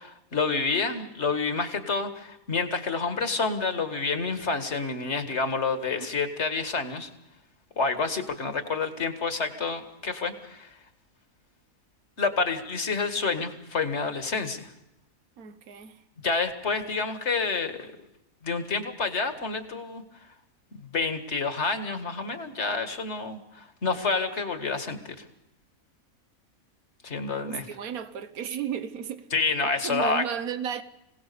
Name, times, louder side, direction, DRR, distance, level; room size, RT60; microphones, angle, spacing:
voice 1, 0.0-7.1 7.8-10.7 12.2-14.7 16.2-17.9 18.4-20.0 20.8-25.2 27.0-27.7 29.3-30.2, left 4 dB, 50° left, 2.1 m, -28 dB
voice 2, 15.4-16.0 27.5-29.3 29.6-30.8, right 8 dB, 90° right, 1.5 m, -34 dB
25.5 x 17.5 x 6.9 m
omnidirectional pair, 1.5 m